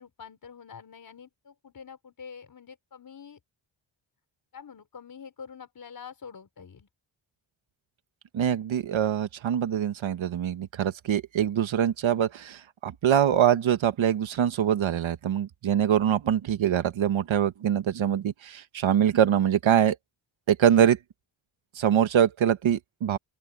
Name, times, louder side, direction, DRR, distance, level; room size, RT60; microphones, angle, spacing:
voice 1, 0.0-3.4 4.5-6.9, left 6 dB, 45° left, 4.7 m, -46 dB
voice 2, 8.3-19.9 20.5-21.0 21.7-23.2, right 9 dB, 85° right, 1.6 m, -24 dB
open air
wide cardioid pair, 170°, 46 cm